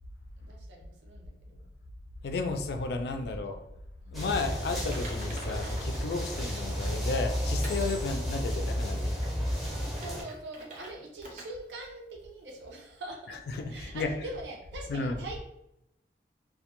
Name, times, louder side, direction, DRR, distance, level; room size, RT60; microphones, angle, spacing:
voice 1, 0.4-1.7 3.2-3.6 4.0-4.1 8.4-8.6 9.6-13.4 13.7-15.4, right 2 dB, 90° right, 0 dB, 0.6 m, -43 dB
voice 2, 2.2-3.6 4.1-9.1 13.5-14.1 14.9-15.2, left 3 dB, 65° left, 6 dB, 0.3 m, -33 dB
sound 1, 4.1-10.2, equal, ahead, 0.6 m, -32 dB
Typing, 4.7-7.0 7.6-8.0 8.5-8.6 9.1-10.9 11.2-11.5 11.8-11.9 12.5-12.6, right 1 dB, 45° right, 0.5 m, -47 dB
2.1 x 2.1 x 2.9 m, 0.81 s
head